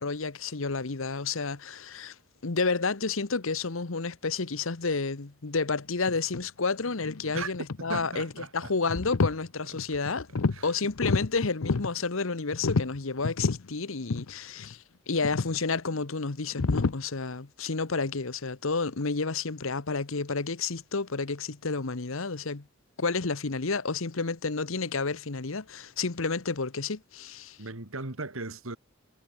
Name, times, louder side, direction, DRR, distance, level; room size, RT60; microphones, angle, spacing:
voice 1, 0.0-2.1 2.4-10.3 10.6-22.6 23.0-27.6, left 4 dB, 65° left, 1.1 m, -30 dB
sound 1, 6.1-6.4 6.9-8.1 8.6-9.4 9.8-10.6 10.9-11.9 12.5-13.7 14.1-14.3 14.6-14.7 15.2-15.6 16.5-16.9, left 3 dB, 85° left, 0.7 m, -29 dB
voice 2, 7.9-8.7 10.5-10.7 27.6-28.8, right 3 dB, 70° right, 2.6 m, -37 dB
head